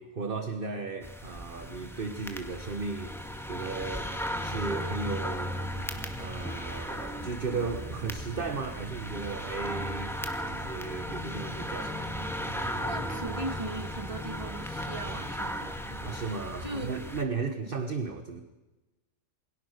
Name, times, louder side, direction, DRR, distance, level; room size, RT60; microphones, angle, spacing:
voice 1, 0.0-4.1 4.4-5.9 6.2-10.1 10.5-12.1 16.0-18.4, right 4 dB, 35° right, 8 dB, 1.5 m, -35 dB
sound 1, 1.0-17.2, equal, ahead, 2.0 m, -36 dB
sound 2, 3.3-17.9, right 6 dB, 70° right, 2.7 m, -50 dB
voice 2, 12.8-15.8 16.1-16.2 16.6-16.9, right 2 dB, 20° right, 7 dB, 2.0 m, -38 dB
28.0 x 22.5 x 6.7 m, 1.1 s
omnidirectional pair, 1.7 m